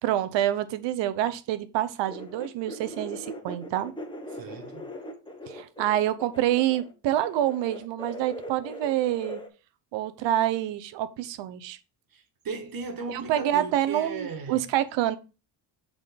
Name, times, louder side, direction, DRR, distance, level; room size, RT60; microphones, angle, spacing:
voice 1, 0.0-3.9 5.5-9.4 9.9-11.8 13.1-15.2, right 12 dB, 90° right, 0.8 m, -27 dB
sound 1, 2.1-6.9 7.3-9.5, equal, 10° left, 1.1 m, -40 dB
voice 2, 4.3-5.0 12.1-14.6, right 5 dB, 55° right, 1.6 m, -37 dB
6.1 x 3.7 x 5.1 m
cardioid pair, 105°, 42 cm